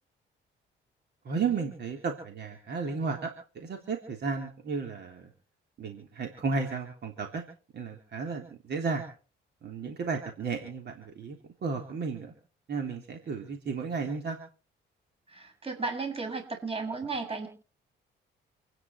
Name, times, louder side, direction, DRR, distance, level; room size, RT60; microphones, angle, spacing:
voice 1, 1.2-5.3 5.8-7.4 7.7-9.0 9.6-12.3 12.7-14.4, right 4 dB, 60° right, 3 dB, 3.3 m, -33 dB
voice 2, 15.3-17.5, right 4 dB, 30° right, 4 dB, 7.6 m, -34 dB
28.5 x 10.0 x 4.7 m, 0.40 s
cardioid pair, 90°, 20 cm